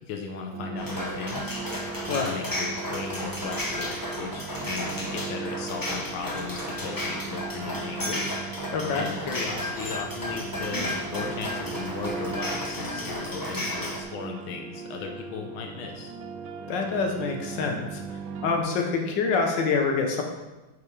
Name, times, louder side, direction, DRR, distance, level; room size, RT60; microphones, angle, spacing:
voice 1, 0.1-1.6 2.2-8.4 8.9-16.1, left 5 dB, 85° left, 3 dB, 1.7 m, -36 dB
sound 1, 0.5-18.6, right 5 dB, 80° right, 1.5 m, -38 dB
sound 2, 0.8-14.0, left 1 dB, 15° left, 0.7 m, -33 dB
voice 2, 2.1-2.4 8.7-9.1 16.7-18.0 18.4-20.2, left 4 dB, 65° left, 2 dB, 1.8 m, -26 dB
8.2 x 6.7 x 5.0 m, 1.1 s
omnidirectional pair, 2.2 m